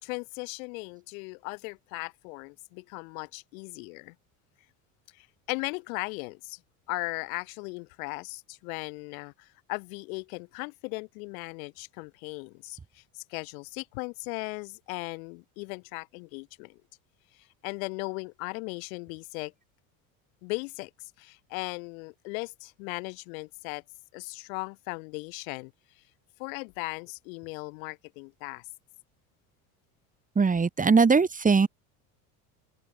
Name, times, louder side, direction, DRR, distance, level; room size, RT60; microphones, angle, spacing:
voice 1, 0.0-4.1 5.1-6.6 6.9-16.8 17.3-19.5 20.4-20.9 21.2-23.8 24.1-25.7 26.4-28.7, left 30 dB, 80° left, 3.5 m, -37 dB
voice 2, 30.4-31.7, right 5 dB, 20° right, 2.3 m, -21 dB
supercardioid pair, 100°, 41 cm